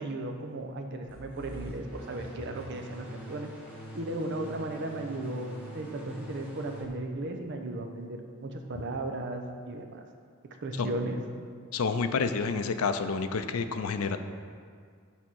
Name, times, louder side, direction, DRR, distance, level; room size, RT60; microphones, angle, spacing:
voice 1, 0.0-3.5 3.9-10.0 10.6-11.2, right 2 dB, 55° right, 4 dB, 0.7 m, -35 dB
sound 1, 1.1-6.9, equal, 5° right, 1.4 m, -45 dB
voice 2, 11.7-14.2, left 5 dB, 75° left, 9 dB, 0.5 m, -29 dB
8.6 x 3.6 x 6.1 m, 2.1 s
head